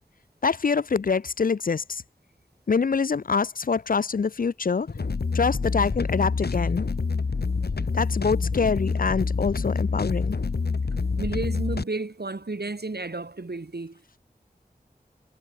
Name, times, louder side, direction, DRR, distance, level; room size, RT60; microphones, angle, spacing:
voice 1, 0.4-2.0 2.7-4.9 5.3-6.9 7.9-10.4, left 5 dB, 60° left, 0.4 m, -25 dB
sound 1, 4.8-11.8, left 4 dB, 85° left, 0.8 m, -27 dB
voice 2, 11.2-14.2, right 3 dB, 85° right, 4.8 m, -32 dB
wide cardioid pair, 40°, 16 cm